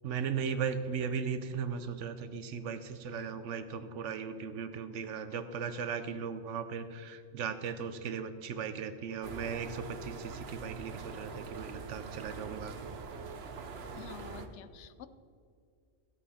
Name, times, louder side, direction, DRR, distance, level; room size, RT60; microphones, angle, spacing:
voice 1, 0.0-12.7, right 6 dB, 85° right, 11 dB, 1.1 m, -37 dB
sound 1, 9.2-14.5, right 5 dB, 65° right, 1.0 m, -44 dB
voice 2, 13.9-15.1, left 9 dB, 75° left, 13 dB, 0.9 m, -48 dB
14.5 x 8.2 x 4.2 m, 2.3 s
omnidirectional pair, 1.2 m